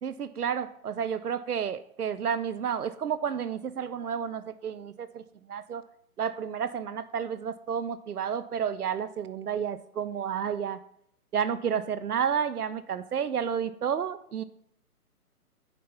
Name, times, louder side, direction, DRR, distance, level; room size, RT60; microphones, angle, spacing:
voice 1, 0.0-5.2 5.5-5.8 6.2-10.8 11.3-14.4, right 7 dB, 75° right, 14 dB, 0.7 m, -31 dB
9.3 x 4.3 x 5.5 m, 0.70 s
figure-of-eight pair, 145°, 45 cm